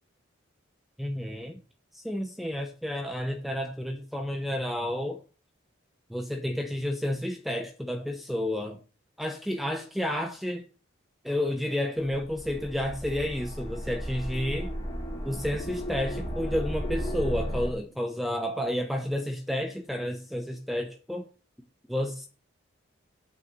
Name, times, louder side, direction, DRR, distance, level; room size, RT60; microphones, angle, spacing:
voice 1, 1.0-1.6 1.9-5.2 6.1-8.8 9.2-10.6 11.2-14.7 15.2-21.2 21.9-22.3, left 1 dB, ahead, 0.8 m, -31 dB
sound 1, 12.0-17.7, equal, 20° left, 2.6 m, -34 dB
9.0 x 6.8 x 6.6 m
head